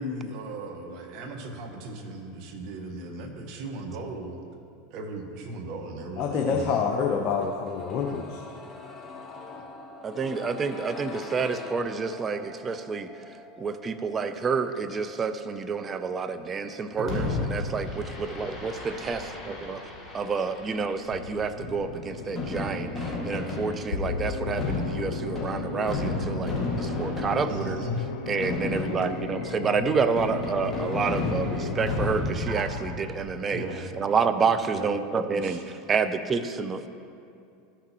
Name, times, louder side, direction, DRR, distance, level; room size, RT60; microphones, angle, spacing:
voice 1, 0.0-4.4 4.9-6.8 17.0-17.3 27.5-28.0 32.5-32.7 33.5-33.9 34.7-34.9 35.4-35.6, right 2 dB, 55° right, 4 dB, 1.1 m, -36 dB
voice 2, 6.2-8.4, left 6 dB, 45° left, 1 dB, 0.7 m, -27 dB
sound 1, 7.4-19.2 19.5-19.6, left 3 dB, 20° left, 1.0 m, -45 dB
voice 3, 10.0-13.1 13.6-19.2 19.7-19.8 20.1-27.8 28.3-33.6 33.9-36.9, right 5 dB, 30° right, 10 dB, 0.5 m, -29 dB
Fireworks, 17.1-33.2, left 2 dB, 5° left, 1.9 m, -33 dB
sound 2, 21.1-32.0, left 6 dB, 80° left, 0.5 m, -35 dB
13.0 x 5.9 x 3.0 m, 2.5 s
hypercardioid pair, 90°, 0 cm